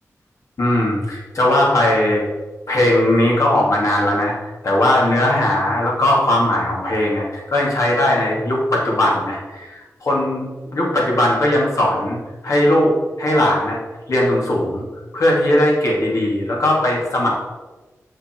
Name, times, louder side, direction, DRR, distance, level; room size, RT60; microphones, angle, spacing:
voice 1, 0.6-2.2 2.7-4.3 4.6-12.2 12.4-12.9 13.2-13.8 14.1-14.8 15.1-17.3, left 1 dB, 65° left, -3 dB, 2.6 m, -18 dB
6.4 x 6.2 x 4.6 m, 1.2 s
wide cardioid pair, 65°, 6 cm